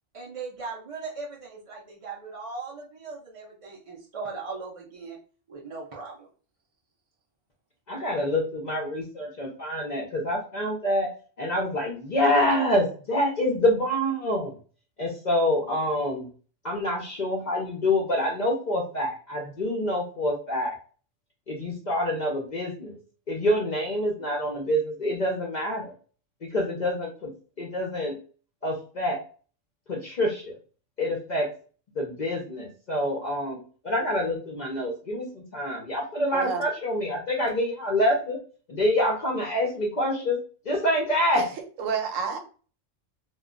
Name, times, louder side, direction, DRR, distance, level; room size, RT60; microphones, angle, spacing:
voice 1, 0.1-5.2 5.5-6.3, right 4 dB, 55° right, -3 dB, 0.3 m, -38 dB
voice 2, 7.9-11.1 11.4-14.6 15.0-16.3 16.6-20.8 21.5-23.0 23.3-25.9 26.4-28.2 28.6-29.2 29.9-30.6 31.0-31.5 31.9-38.4 38.7-40.4 40.6-41.4, left 1 dB, 50° left, 0 dB, 0.5 m, -26 dB
voice 3, 36.3-36.6 41.3-41.4 41.8-42.4, right 6 dB, 80° right, 5 dB, 1.0 m, -29 dB
2.3 x 2.1 x 3.6 m, 0.38 s
omnidirectional pair, 1.3 m